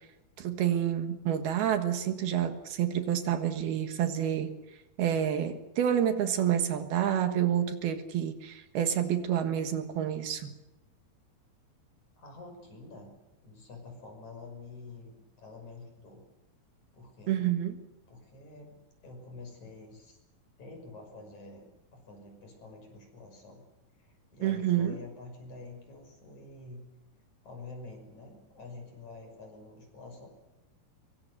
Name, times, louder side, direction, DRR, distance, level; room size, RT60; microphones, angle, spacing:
voice 1, 0.4-4.5 5.0-10.5 17.3-17.7 24.4-25.0, right 10 dB, 75° right, 7 dB, 3.4 m, -28 dB
voice 2, 12.2-13.1 13.4-16.2 16.9-17.4 18.1-18.8 19.0-20.2 20.6-21.7 21.9-23.7 24.0-26.8 27.4-30.3, left 3 dB, 45° left, 3 dB, 7.1 m, -48 dB
25.0 x 23.0 x 6.7 m, 1.0 s
omnidirectional pair, 4.6 m